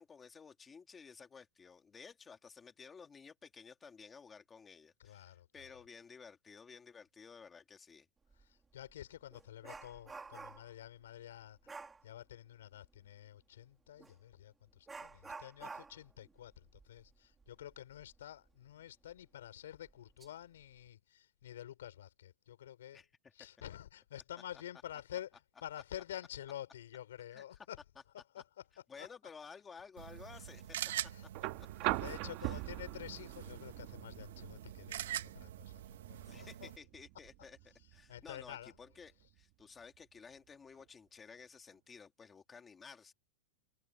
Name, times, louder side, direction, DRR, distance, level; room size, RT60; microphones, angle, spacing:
voice 1, 0.0-8.1 22.9-23.1 27.3-27.4 28.9-30.8 31.6-31.7 32.4-32.6 36.2-37.6 37.9-43.1, left 5 dB, 10° left, 1.7 m, -54 dB
voice 2, 5.0-5.7 8.3-11.7 12.0-23.1 23.3-27.8 28.1-29.1 30.3-30.4 31.1-31.3 31.7-36.7 38.1-38.8, left 11 dB, 90° left, 5.2 m, -49 dB
Dog, 8.3-8.5 8.9-10.8 11.7-12.0 14.0-14.2 14.9-18.2 18.5-18.6 19.1-19.2 19.9-20.3 20.6-20.9, right 4 dB, 10° right, 2.4 m, -50 dB
sound 1, 30.0-36.8, right 11 dB, 70° right, 1.3 m, -45 dB
sound 2, 31.3-39.4 40.8-40.9, right 19 dB, 35° right, 1.4 m, -43 dB
supercardioid pair, 175°, 0 cm